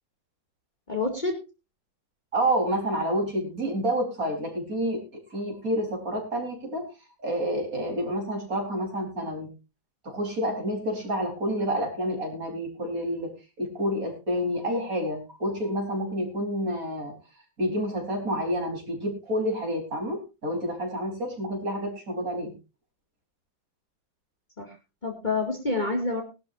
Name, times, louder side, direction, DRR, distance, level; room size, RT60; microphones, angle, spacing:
voice 1, 0.9-1.4 24.6-24.8 25.0-26.2, left 3 dB, 25° left, 2 dB, 2.5 m, -27 dB
voice 2, 2.3-5.0 5.3-6.9 7.2-9.5 10.0-13.3 13.6-17.1 17.6-22.5, equal, 45° right, 1 dB, 4.8 m, -29 dB
20.5 x 12.0 x 2.6 m, 0.29 s
omnidirectional pair, 2.0 m